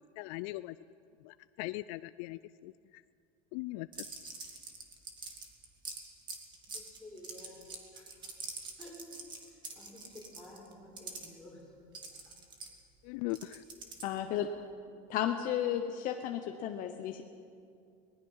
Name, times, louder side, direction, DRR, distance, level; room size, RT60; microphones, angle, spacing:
voice 1, 0.2-0.8 1.2-2.7 3.5-4.1 13.0-13.6, left 19 dB, 65° left, 14 dB, 0.4 m, -39 dB
sound 1, 3.9-11.3 11.9-14.3, right 4 dB, 25° right, 2.2 m, -45 dB
voice 2, 6.6-8.1 8.8-9.2 9.5-11.7 12.0-12.3, left 1 dB, 5° left, -6 dB, 6.6 m, -52 dB
voice 3, 14.0-14.5 15.1-17.2, left 10 dB, 45° left, 5 dB, 1.0 m, -33 dB
23.0 x 20.0 x 5.7 m, 2.4 s
cardioid pair, 160°, 20 cm